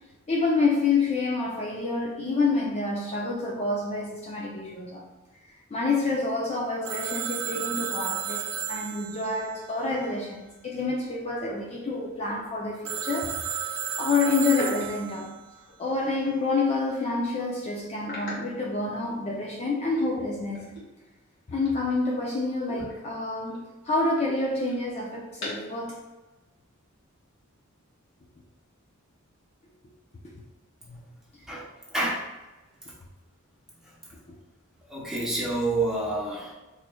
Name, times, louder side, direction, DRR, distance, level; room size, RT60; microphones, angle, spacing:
voice 1, 0.3-5.0 5.7-8.4 8.7-13.4 14.0-15.3 15.8-20.7 21.5-26.0 30.2-30.3, left 3 dB, 30° left, -2 dB, 0.4 m, -28 dB
Telephone, 6.8-10.5 12.8-15.4, right 9 dB, 80° right, 0.5 m, -33 dB
sound 1, 11.4-12.3 14.5-16.1 16.5-16.7 17.1-17.2 18.0-19.5 19.8-22.3 22.6-25.8, left 1 dB, 65° left, 1.4 m, -43 dB
voice 2, 31.4-32.3 33.8-33.9 34.9-36.5, right 2 dB, 5° right, -6 dB, 0.8 m, -29 dB
4.1 x 3.0 x 2.2 m, 1.1 s
head